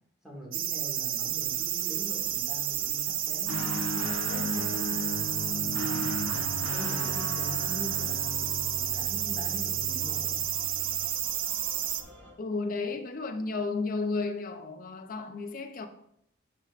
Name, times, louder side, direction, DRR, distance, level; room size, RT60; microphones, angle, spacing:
voice 1, 0.2-3.6 3.9-5.0 5.5-6.4 6.7-10.4, equal, ahead, 1.9 m, -43 dB
sound 1, 0.5-12.0, right 11 dB, 45° right, 0.4 m, -31 dB
sound 2, 1.3-12.3, equal, 65° right, 2.5 m, -51 dB
Guitar, 3.5-11.1, left 2 dB, 85° left, 0.7 m, -36 dB
voice 2, 12.4-15.9, left 3 dB, 40° left, 0.6 m, -33 dB
11.0 x 4.4 x 2.5 m
head